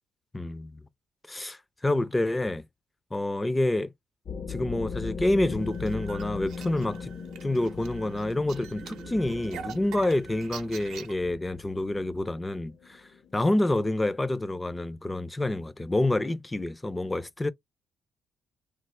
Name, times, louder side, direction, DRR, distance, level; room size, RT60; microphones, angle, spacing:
voice 1, 0.3-0.7 1.3-2.6 3.1-3.9 4.5-7.1 7.4-13.0 13.3-17.5, left 1 dB, 15° left, 0.4 m, -28 dB
sound 1, 4.3-14.5, left 5 dB, 60° left, 0.6 m, -39 dB
sound 2, 5.6-11.1, right 8 dB, 85° right, 0.6 m, -45 dB
sound 3, 7.8-10.3, right 5 dB, 45° right, 0.5 m, -48 dB
3.1 x 2.0 x 3.1 m
cardioid pair, 90°, 0 cm